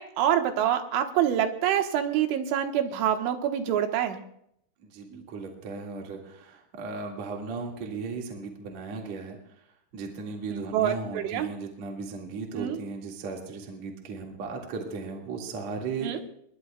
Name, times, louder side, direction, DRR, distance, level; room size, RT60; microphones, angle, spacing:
voice 1, 0.0-4.2 5.1-5.2 10.5-11.5 12.6-12.8 16.0-16.2, right 10 dB, 75° right, 5 dB, 3.5 m, -26 dB
voice 2, 4.8-9.6 9.9-16.2, right 4 dB, 45° right, 0 dB, 2.4 m, -36 dB
29.0 x 20.5 x 2.4 m, 0.73 s
omnidirectional pair, 5.8 m